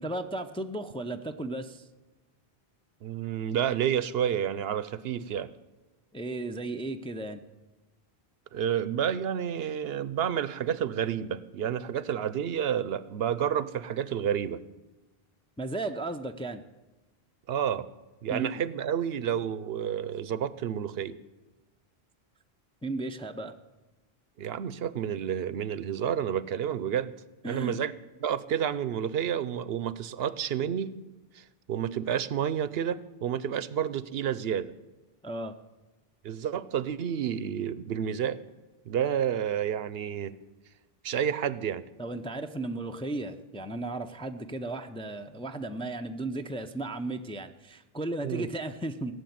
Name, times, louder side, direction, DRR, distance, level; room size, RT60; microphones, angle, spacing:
voice 1, 0.0-1.9 6.1-7.4 15.6-16.6 18.3-18.6 22.8-23.5 27.4-27.8 35.2-35.5 42.0-49.1, right 2 dB, 5° left, 6 dB, 0.4 m, -35 dB
voice 2, 3.0-5.5 8.5-14.6 17.5-17.9 18.2-21.2 24.4-27.1 27.4-27.9 28.2-31.0 31.3-34.7 36.2-38.4 38.9-40.4 41.0-41.8 48.2-48.5, right 9 dB, 70° right, 16 dB, 0.8 m, -30 dB
17.5 x 6.8 x 9.3 m, 1.1 s
omnidirectional pair, 1.1 m